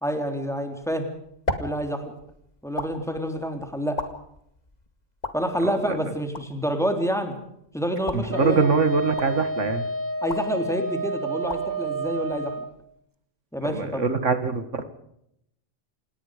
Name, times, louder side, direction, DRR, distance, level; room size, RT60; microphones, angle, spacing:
voice 1, 0.0-1.1 1.6-2.1 2.6-4.0 5.3-7.3 7.7-8.6 10.2-12.5 13.5-14.1, equal, ahead, 5 dB, 3.6 m, -28 dB
sound 1, 0.8-13.0, left 2 dB, 35° left, 2.3 m, -39 dB
voice 2, 5.6-6.0 8.1-9.9 13.6-14.8, right 4 dB, 80° right, 10 dB, 2.2 m, -24 dB
Wind instrument woodwind instrument, 8.3-12.7, right 2 dB, 15° right, 1.3 m, -30 dB
28.0 x 19.0 x 5.1 m, 0.76 s
omnidirectional pair, 1.2 m